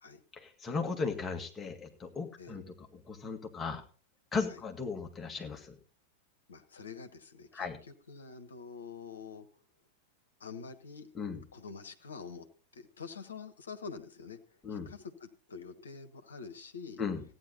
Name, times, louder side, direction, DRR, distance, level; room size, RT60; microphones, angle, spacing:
voice 1, 0.4-3.8 4.3-5.8 7.5-7.8 11.1-11.4 14.6-14.9 17.0-17.2, left 4 dB, 20° left, 3 dB, 2.0 m, -36 dB
voice 2, 6.5-9.5 10.4-11.1 11.5-12.5 12.7-17.0, left 5 dB, 70° left, 9 dB, 1.2 m, -46 dB
15.0 x 9.7 x 4.1 m, 0.38 s
figure-of-eight pair, 90°, 0 cm